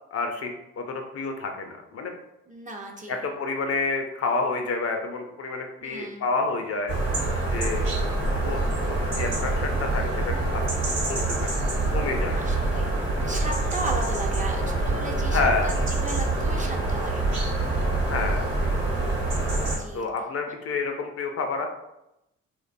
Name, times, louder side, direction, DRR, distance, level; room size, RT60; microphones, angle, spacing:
voice 1, 0.1-2.1 3.1-7.0 7.5-7.9 8.4-8.6 8.9-10.6 11.1-11.5 11.9-12.4 15.3-15.7 18.1-18.4 19.9-21.7, left 3 dB, 45° left, 4 dB, 0.5 m, -29 dB
voice 2, 2.5-3.2 5.8-6.3 12.4-12.9 13.2-17.4 19.7-20.1 20.5-20.6, right 2 dB, 25° right, 1 dB, 0.5 m, -36 dB
sound 1, 6.9-19.8, right 2 dB, 80° right, 1.0 m, -26 dB
2.5 x 2.1 x 2.5 m, 0.87 s
hypercardioid pair, 50°, 33 cm